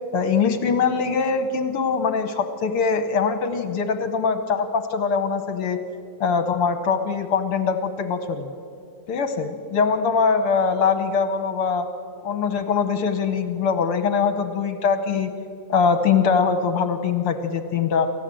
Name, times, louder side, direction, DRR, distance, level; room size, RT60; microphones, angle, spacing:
voice 1, 0.1-5.8 6.2-8.5 9.1-11.9 12.2-15.3 15.7-18.1, left 5 dB, 60° left, 8 dB, 1.6 m, -22 dB
28.0 x 15.0 x 7.6 m, 2.5 s
omnidirectional pair, 3.3 m